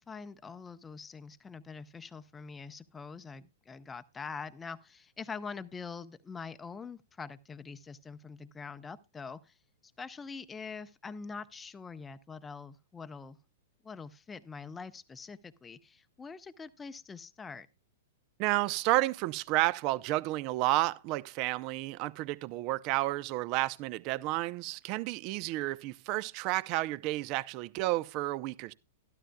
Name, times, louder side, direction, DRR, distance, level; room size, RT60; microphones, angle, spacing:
voice 1, 0.0-9.6 9.8-13.4 13.8-17.7, left 5 dB, 15° left, 0.7 m, -44 dB
voice 2, 18.4-28.7, right 19 dB, 45° right, 0.6 m, -31 dB
12.5 x 12.5 x 2.2 m
hypercardioid pair, 110°, 0 cm